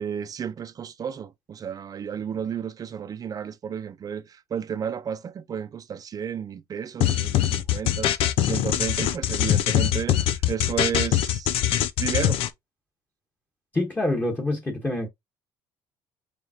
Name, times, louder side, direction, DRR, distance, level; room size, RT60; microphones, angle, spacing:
voice 1, 0.0-11.6 12.0-12.5, right 8 dB, 40° right, 0.7 m, -32 dB
sound 1, 7.0-12.5, left 12 dB, 65° left, 0.6 m, -23 dB
voice 2, 13.7-15.1, left 2 dB, 15° left, 1.5 m, -26 dB
5.0 x 3.3 x 2.9 m
cardioid pair, 100°, 10 cm